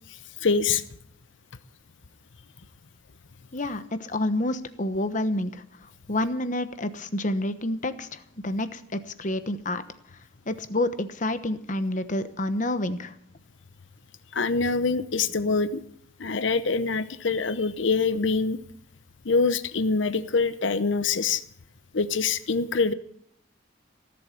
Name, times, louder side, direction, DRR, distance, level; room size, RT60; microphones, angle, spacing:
voice 1, 0.1-0.8 14.3-15.8 16.2-18.6 19.2-21.4 21.9-22.9, left 4 dB, 70° left, 13 dB, 0.8 m, -25 dB
voice 2, 3.5-5.6 6.1-9.8 10.5-13.1, left 1 dB, 40° left, 11 dB, 1.1 m, -28 dB
17.5 x 7.9 x 9.3 m, 0.71 s
head